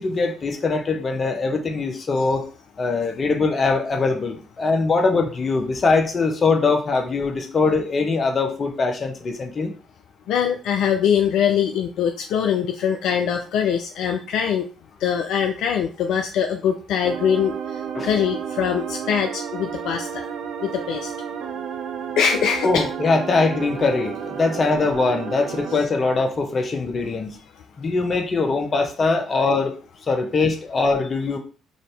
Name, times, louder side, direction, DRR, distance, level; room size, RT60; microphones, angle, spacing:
voice 1, 0.0-2.5 2.8-9.7 17.9-18.1 22.6-27.4 27.8-29.8 30.1-31.4, left 3 dB, 40° left, 5 dB, 1.0 m, -22 dB
voice 2, 10.3-14.6 15.0-17.5 18.0-20.2 20.6-21.1 22.2-22.9, left 8 dB, 70° left, 4 dB, 0.3 m, -22 dB
sound 1, 17.0-25.8, right 7 dB, 65° right, 0.5 m, -32 dB
4.0 x 2.7 x 3.3 m, 0.37 s
hypercardioid pair, 50°, 0 cm